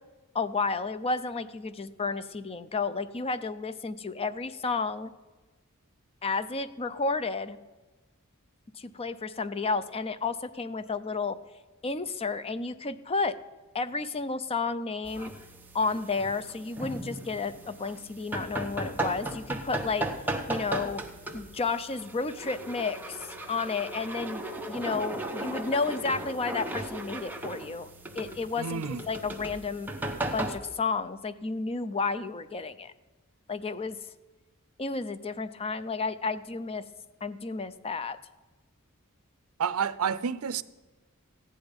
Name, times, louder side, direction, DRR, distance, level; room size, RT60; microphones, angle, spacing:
voice 1, 0.3-5.1 6.2-7.6 8.7-11.4 11.8-13.4 13.7-15.3 15.7-20.1 20.5-21.0 21.3-27.9 28.2-29.9 30.3-32.9 33.5-34.0 34.8-36.8 37.2-38.2, left 4 dB, 25° left, 0.5 m, -32 dB
sound 1, 15.0-30.6, right 1 dB, 10° right, 0.9 m, -36 dB
voice 2, 28.6-29.0 39.6-40.6, right 6 dB, 75° right, 0.5 m, -29 dB
15.0 x 9.9 x 5.2 m
head